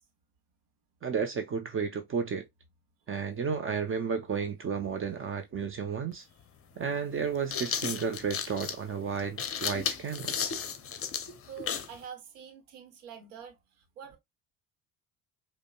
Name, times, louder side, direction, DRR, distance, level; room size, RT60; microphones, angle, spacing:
voice 1, 1.0-2.5 3.1-6.3 6.8-10.5, right 6 dB, 30° right, 0.6 m, -32 dB
sound 1, 6.1-6.2 7.2-12.0, left 7 dB, 30° left, 0.7 m, -34 dB
voice 2, 11.4-13.5 14.0-14.2, right 8 dB, 80° right, 0.9 m, -45 dB
5.0 x 2.1 x 2.2 m
hypercardioid pair, 60°, 45 cm